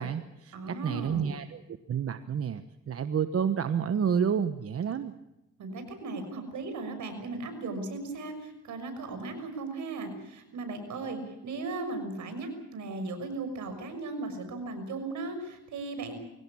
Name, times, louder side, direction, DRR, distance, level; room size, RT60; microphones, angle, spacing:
voice 1, 0.0-1.6 1.9-5.1, right 7 dB, 50° right, 10 dB, 1.2 m, -29 dB
voice 2, 0.5-1.4 5.6-16.2, right 3 dB, 75° right, 7 dB, 6.2 m, -37 dB
23.5 x 17.5 x 8.7 m, 0.94 s
cardioid pair, 90°, 30 cm